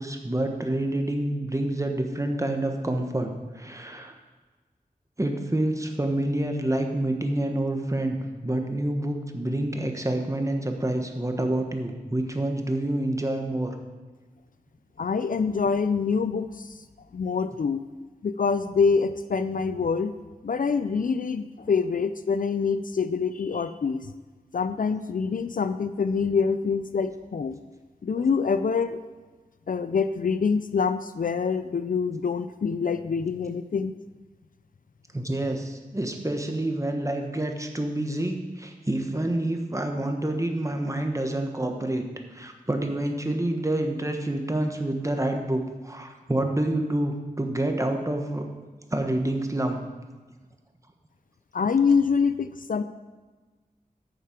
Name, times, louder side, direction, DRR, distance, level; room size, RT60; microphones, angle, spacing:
voice 1, 0.0-4.1 5.2-13.8 28.1-28.3 35.1-42.0 42.3-48.5 48.9-49.8, right 1 dB, 20° right, 4 dB, 1.3 m, -28 dB
voice 2, 15.0-16.7 17.1-17.8 18.2-20.1 20.4-24.1 24.5-27.6 28.0-29.0 29.7-33.9 51.5-52.8, left 5 dB, 60° left, 11 dB, 0.4 m, -25 dB
9.1 x 6.7 x 5.1 m, 1.3 s
cardioid pair, 45°, 16 cm